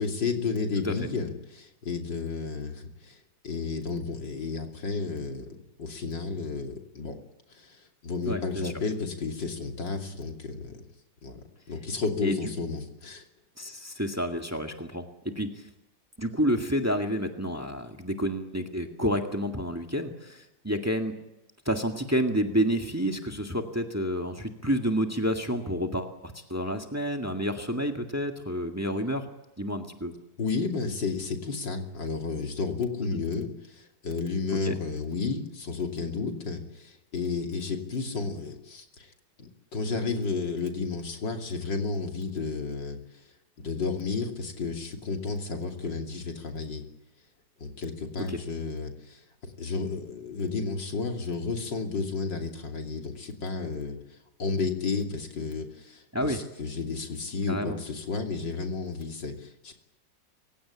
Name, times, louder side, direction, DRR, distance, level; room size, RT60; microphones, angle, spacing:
voice 1, 0.0-3.2 3.4-7.2 7.5-10.8 11.2-13.3 30.4-39.1 39.4-43.0 43.6-46.8 47.6-59.7, left 4 dB, 85° left, 3 dB, 3.5 m, -32 dB
voice 2, 8.2-8.7 12.2-12.4 13.6-15.6 16.2-21.2 21.7-29.3 29.6-30.1 34.6-34.8 48.2-48.4 56.1-56.4 57.5-57.8, equal, 10° right, 3 dB, 1.7 m, -29 dB
27.0 x 16.5 x 8.7 m, 0.94 s
omnidirectional pair, 1.9 m